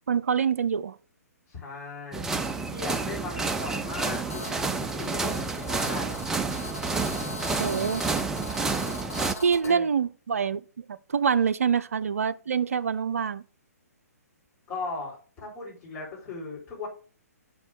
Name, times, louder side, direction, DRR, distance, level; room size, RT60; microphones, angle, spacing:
voice 1, 0.1-1.0 7.6-8.0 9.4-13.4, right 6 dB, 60° right, 0.5 m, -26 dB
voice 2, 1.5-2.3 2.6-6.1 9.6-9.9 14.7-16.9, left 3 dB, 25° left, 4.4 m, -38 dB
sound 1, 2.1-9.3, right 4 dB, 5° right, 0.4 m, -30 dB
Telephone, 4.3-9.7, left 1 dB, 65° left, 4.7 m, -39 dB
7.0 x 4.2 x 6.2 m
figure-of-eight pair, 125°, 9 cm